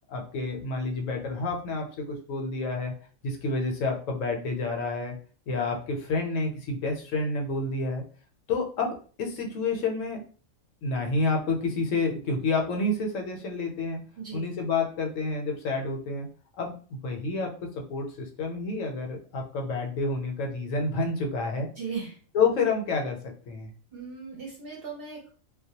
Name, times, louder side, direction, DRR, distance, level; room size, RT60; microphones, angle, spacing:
voice 1, 0.1-2.9 3.2-5.1 5.5-8.0 8.5-10.2 10.8-14.0 14.3-16.3 16.6-17.5 17.8-21.7 22.3-23.2 23.5-23.7, left 3 dB, 75° left, 2 dB, 0.9 m, -29 dB
voice 2, 14.2-14.5 21.8-22.2 23.9-25.3, right 5 dB, 55° right, -1 dB, 0.7 m, -37 dB
2.2 x 2.1 x 2.7 m, 0.39 s
omnidirectional pair, 1.4 m